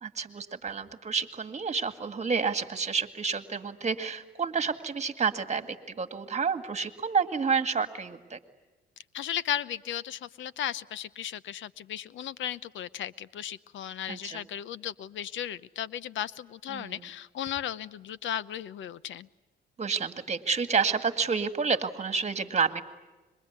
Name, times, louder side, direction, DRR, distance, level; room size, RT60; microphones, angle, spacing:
voice 1, 0.0-8.4 14.1-14.4 16.7-17.1 19.8-22.8, right 5 dB, 35° right, 10 dB, 2.1 m, -29 dB
voice 2, 9.1-19.3, left 10 dB, 75° left, 18 dB, 0.8 m, -35 dB
26.5 x 23.0 x 9.5 m, 1.2 s
cardioid pair, 90°, 20 cm